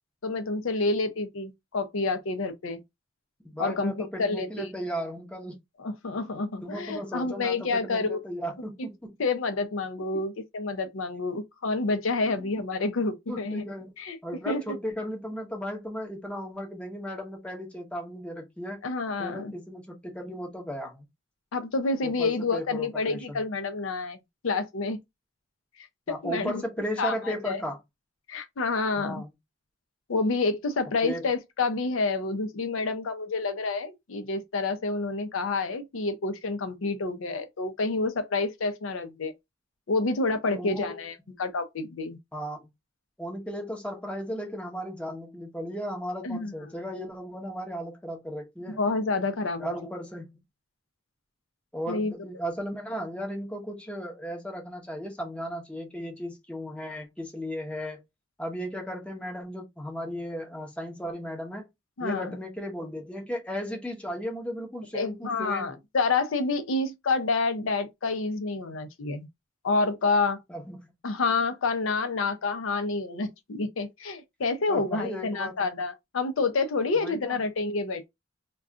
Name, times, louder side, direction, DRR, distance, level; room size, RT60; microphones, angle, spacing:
voice 1, 0.2-2.8 3.6-4.7 5.8-8.2 9.2-13.6 14.0-14.2 14.5-14.8 18.8-19.5 21.5-24.2 24.4-25.0 25.8-26.6 27.0-27.6 28.3-29.2 30.1-39.3 39.9-42.2 46.2-46.5 48.7-49.7 51.9-52.1 62.0-62.4 64.9-69.3 69.6-70.4 71.0-78.1, left 3 dB, 90° left, 0.6 m, -28 dB
voice 2, 3.4-5.5 6.6-9.1 12.2-12.5 13.3-13.9 14.2-18.8 19.2-21.1 22.0-23.4 26.1-27.8 29.0-29.3 31.0-31.3 40.5-41.0 42.3-42.7 43.2-48.8 49.6-50.3 51.7-58.0 58.4-61.7 62.0-65.8 70.5-70.8 74.7-75.7 76.9-77.4, equal, 5° left, 0.7 m, -35 dB
2.4 x 2.2 x 3.6 m
head